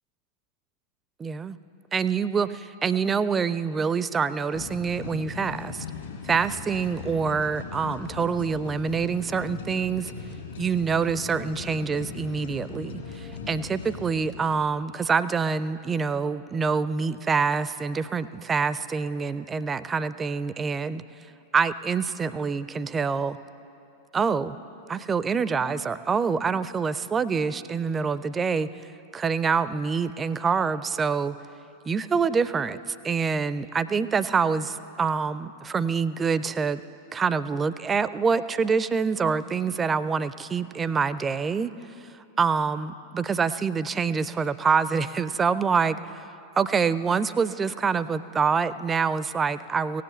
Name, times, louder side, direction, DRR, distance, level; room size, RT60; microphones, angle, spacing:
voice 1, 1.2-1.6 1.9-5.9 6.2-10.1 10.6-21.0 21.5-23.4 24.1-24.6 24.9-28.7 29.1-31.4 31.9-36.8 37.1-41.7 42.4-46.3 46.6-50.0, right 5 dB, 20° right, 16 dB, 0.4 m, -26 dB
sound 1, 4.5-14.7, left 5 dB, 65° left, 1.6 m, -39 dB
17.0 x 7.6 x 8.2 m, 2.8 s
figure-of-eight pair, 90°, 0 cm